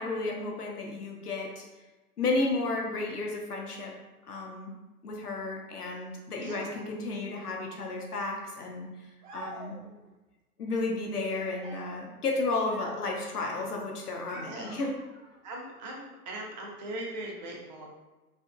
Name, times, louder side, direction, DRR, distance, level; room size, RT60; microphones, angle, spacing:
voice 1, 0.0-1.6 2.2-3.9 4.2-4.7 5.0-8.9 9.3-9.7 10.6-14.9, left 3 dB, 80° left, 0 dB, 0.7 m, -32 dB
voice 2, 6.4-6.8 14.4-14.8 15.4-17.9, right 1 dB, 30° right, -1 dB, 0.5 m, -40 dB
sound 1, 9.2-10.1 11.3-13.3 14.3-15.4, right 2 dB, 55° right, 1.0 m, -46 dB
2.8 x 2.5 x 2.4 m, 1.1 s
figure-of-eight pair, 105°, 46 cm